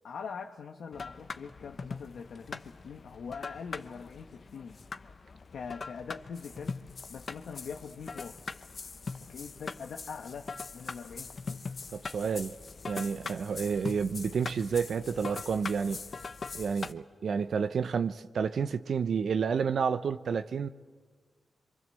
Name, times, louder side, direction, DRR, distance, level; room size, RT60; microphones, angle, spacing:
voice 1, 0.0-4.8 5.5-6.8 7.1-8.4 9.3-11.6, left 6 dB, 80° left, 1.3 m, -43 dB
sound 1, 0.9-16.9, left 4 dB, 50° left, 0.9 m, -42 dB
voice 2, 11.9-12.5 12.9-16.0 16.5-20.7, right 6 dB, 70° right, 0.8 m, -30 dB
26.0 x 23.5 x 7.7 m
cardioid pair, 70°, 0 cm